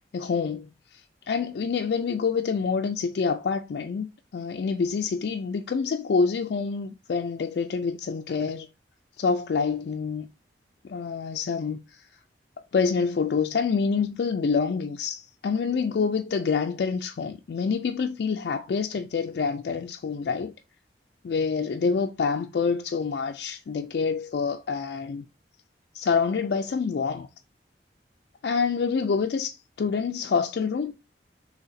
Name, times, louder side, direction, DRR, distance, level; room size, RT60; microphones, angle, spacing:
voice 1, 0.1-8.7 9.2-10.3 10.8-12.0 12.7-20.5 21.2-25.3 25.9-27.3 28.4-31.0, left 5 dB, 65° left, 0.3 m, -27 dB
3.9 x 2.8 x 4.0 m
head